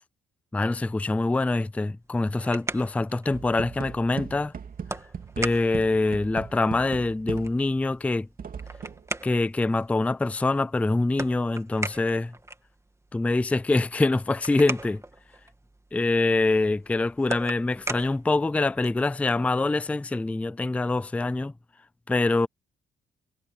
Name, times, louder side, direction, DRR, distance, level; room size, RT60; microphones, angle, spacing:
voice 1, 0.5-4.5 5.4-8.3 9.2-12.3 13.1-15.0 15.9-21.5 22.1-22.5, left 2 dB, 5° left, 0.4 m, -25 dB
sound 1, 2.0-19.1, right 2 dB, 15° right, 2.6 m, -40 dB
sound 2, 3.3-7.8 8.4-9.1, right 7 dB, 45° right, 2.5 m, -39 dB
cardioid pair, 90°, 20 cm